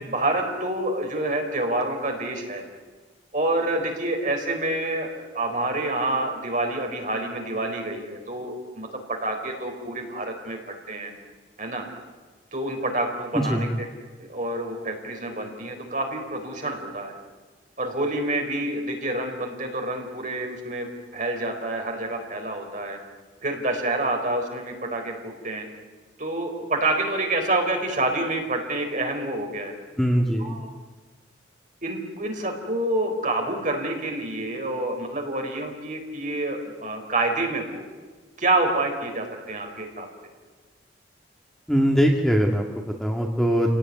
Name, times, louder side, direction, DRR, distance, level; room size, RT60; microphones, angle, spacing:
voice 1, 0.1-2.6 3.3-10.6 10.9-11.1 11.6-11.8 12.5-13.7 14.2-17.2 17.8-23.0 23.4-25.6 26.2-29.7 30.4-30.6 31.8-37.8 38.4-40.1, right 2 dB, 40° right, 2 dB, 4.5 m, -27 dB
voice 2, 13.3-13.7 30.0-30.6 41.7-43.7, equal, ahead, 0 dB, 2.1 m, -22 dB
29.0 x 18.0 x 9.6 m, 1.3 s
head